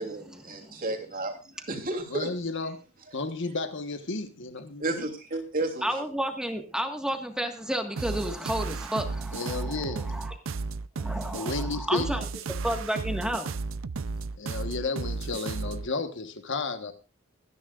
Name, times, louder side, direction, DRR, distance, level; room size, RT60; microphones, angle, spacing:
voice 1, 0.0-2.3 4.8-5.8, right 2 dB, 45° right, 3.1 m, -32 dB
voice 2, 2.1-2.8 3.1-5.1 9.3-10.1 11.3-12.2 14.4-16.9, left 3 dB, 60° left, 1.3 m, -32 dB
voice 3, 5.8-10.3 11.0-12.2 12.6-13.5, equal, 5° right, 1.6 m, -31 dB
sound 1, 8.0-15.9, right 4 dB, 70° right, 0.5 m, -33 dB
24.5 x 10.0 x 2.5 m
head